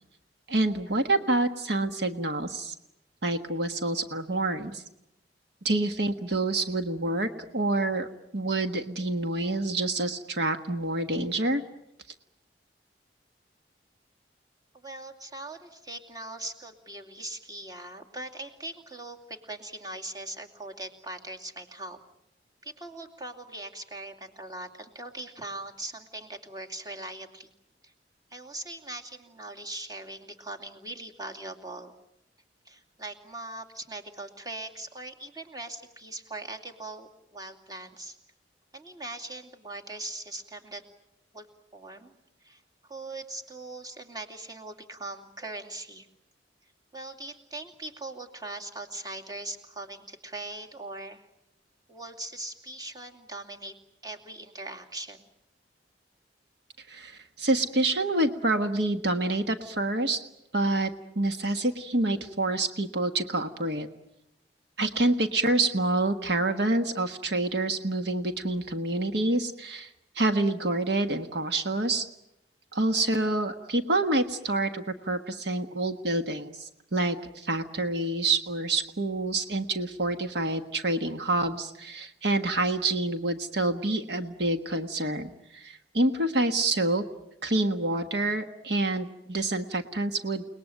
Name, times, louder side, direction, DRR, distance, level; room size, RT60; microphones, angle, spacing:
voice 1, 0.5-2.7 3.2-4.8 5.6-8.1 8.3-11.6 56.9-60.2 60.5-60.9 61.1-63.9 64.8-72.0 72.7-87.0 87.4-90.6, right 2 dB, 70° right, 7 dB, 1.4 m, -27 dB
voice 2, 14.7-22.0 22.6-27.5 27.8-27.9 28.3-31.9 32.6-38.2 38.7-40.8 41.3-41.5 41.7-42.2 42.4-46.1 46.9-51.3 51.9-53.8 54.0-55.3, right 2 dB, 20° right, 2 dB, 2.5 m, -40 dB
30.0 x 20.0 x 9.1 m, 0.86 s
head